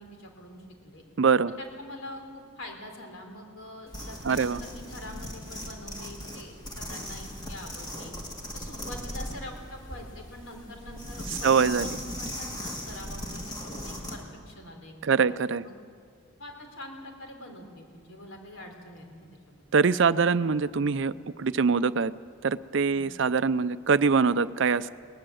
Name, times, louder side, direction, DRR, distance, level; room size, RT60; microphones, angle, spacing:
voice 1, 0.0-1.0 1.6-8.1 8.5-15.0 15.6-15.8 16.4-19.6 22.9-23.1, left 1 dB, 75° left, 3 dB, 3.6 m, -44 dB
voice 2, 1.2-1.5 4.2-4.6 11.4-12.0 15.0-15.6 19.7-22.1 22.4-24.9, right 5 dB, 60° right, 15 dB, 0.5 m, -23 dB
sound 1, 3.9-14.2, equal, 20° left, 2.4 m, -38 dB
21.5 x 18.5 x 7.8 m, 2.1 s
head